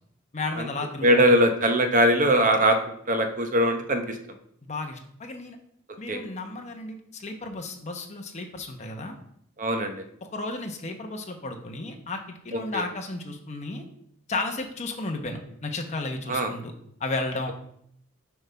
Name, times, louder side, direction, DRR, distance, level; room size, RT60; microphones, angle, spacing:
voice 1, 0.3-1.3 4.6-5.6 6.0-9.2 10.2-13.8 14.3-16.7 17.0-17.5, left 2 dB, 35° left, 4 dB, 0.9 m, -33 dB
voice 2, 1.0-2.8 3.1-4.2 6.1-6.2 9.6-9.9 12.5-12.8 16.3-16.5, equal, 40° right, 6 dB, 0.8 m, -21 dB
7.6 x 3.5 x 5.5 m, 0.69 s
head